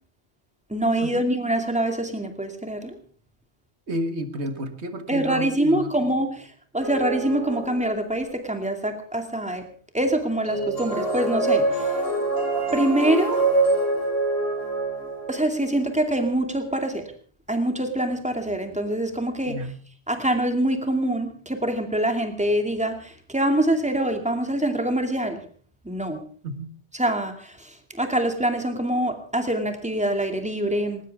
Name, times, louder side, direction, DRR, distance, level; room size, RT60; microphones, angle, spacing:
voice 1, 0.7-3.0 5.1-6.5 6.7-9.6 9.9-11.9 12.7-13.4 15.3-17.0 17.5-19.6 20.1-25.4 25.8-26.2 26.9-27.7 28.0-31.0, right 1 dB, 5° right, 5 dB, 2.4 m, -25 dB
voice 2, 3.9-5.9 19.5-19.8 26.4-26.7, right 1 dB, 85° right, 9 dB, 1.8 m, -31 dB
sound 1, 6.8-8.1 10.4-15.7, right 2 dB, 60° left, 5.1 m, -25 dB
20.0 x 19.0 x 3.5 m, 0.44 s
omnidirectional pair, 1.1 m